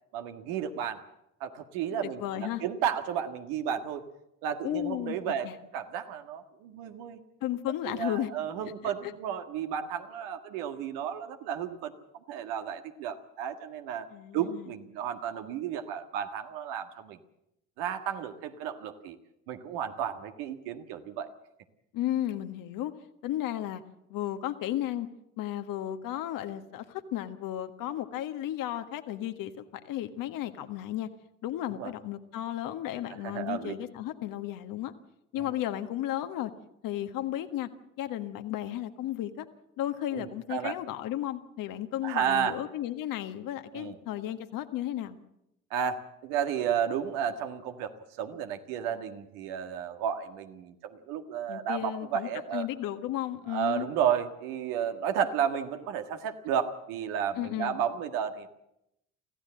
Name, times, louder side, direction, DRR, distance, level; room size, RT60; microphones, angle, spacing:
voice 1, 0.1-1.0 1.4-4.0 4.4-7.2 7.8-11.9 12.3-14.1 14.3-17.2 17.8-19.2 19.5-21.3 31.7-31.9 33.2-33.7 35.4-35.5 40.1-40.8 42.0-42.6 43.7-44.0 45.7-47.9 48.2-52.7 53.5-58.5, right 8 dB, 70° right, 7 dB, 1.8 m, -32 dB
voice 2, 2.0-2.6 4.6-5.2 5.4-5.5 7.4-8.3 8.8-9.1 14.1-14.7 21.9-22.9 23.2-23.8 24.1-25.1 25.4-31.1 31.4-34.9 35.3-36.5 36.8-37.7 38.0-39.5 39.8-45.2 51.5-53.9 57.3-57.8, left 12 dB, 60° left, 8 dB, 1.6 m, -34 dB
24.5 x 15.5 x 7.6 m, 0.83 s
hypercardioid pair, 55°, 37 cm